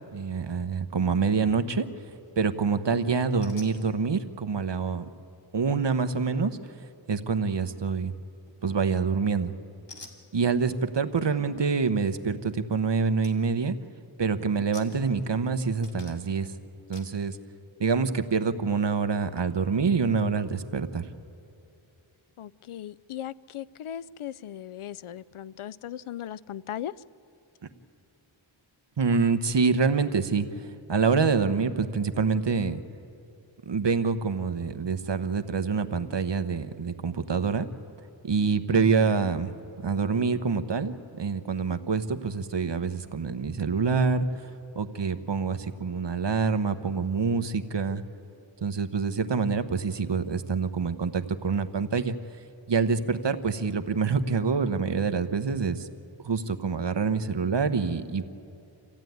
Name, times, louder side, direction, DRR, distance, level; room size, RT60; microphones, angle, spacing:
voice 1, 0.1-1.8 2.4-5.0 5.5-6.6 7.1-8.1 8.6-9.5 10.3-13.7 14.2-16.5 16.9-17.4 17.8-21.0 29.0-30.4 30.9-32.8 33.7-37.7 38.2-39.5 39.8-44.3 44.7-48.0 48.6-52.1 52.7-55.9 56.2-58.2, right 5 dB, 60° right, 1.1 m, -26 dB
sound 1, 2.1-2.5 3.4-3.8 8.5-8.9 9.9-10.2 12.7-12.8 13.2-13.4 13.7-14.1 14.7-15.5 15.8-16.4 16.9-17.2, left 3 dB, 60° left, 2.5 m, -49 dB
voice 2, 11.2-11.7 22.4-26.9 38.7-39.3, left 10 dB, 80° left, 0.6 m, -38 dB
26.5 x 15.0 x 9.4 m
wide cardioid pair, 65°, 49 cm